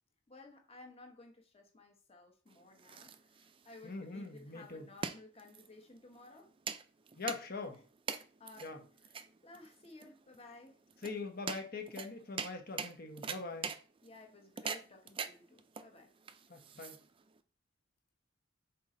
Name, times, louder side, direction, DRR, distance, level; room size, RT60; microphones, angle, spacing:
voice 1, 0.3-6.5 7.7-7.8 8.4-8.8 9.4-10.8 14.0-16.1, left 2 dB, 30° left, 3 dB, 1.3 m, -56 dB
sound 1, 2.5-17.4, right 6 dB, 25° right, 0.4 m, -44 dB
voice 2, 3.8-4.8 7.2-7.8 8.6-8.8 11.0-13.7 16.5-17.0, left 3 dB, 50° left, 5 dB, 1.2 m, -42 dB
5.9 x 4.4 x 3.8 m, 0.38 s
head